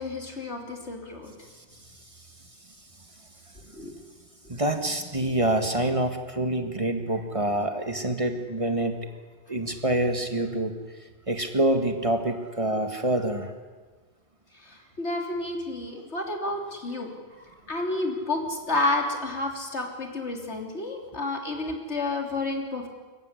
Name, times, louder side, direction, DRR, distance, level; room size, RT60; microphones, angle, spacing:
voice 1, 0.0-1.3 3.7-4.0 14.5-17.1 17.7-22.9, left 2 dB, 85° left, 2 dB, 3.6 m, -30 dB
voice 2, 4.5-9.1 9.5-10.7 11.3-13.5, right 1 dB, 30° right, 6 dB, 1.8 m, -26 dB
26.0 x 14.5 x 9.8 m, 1.3 s
omnidirectional pair, 1.1 m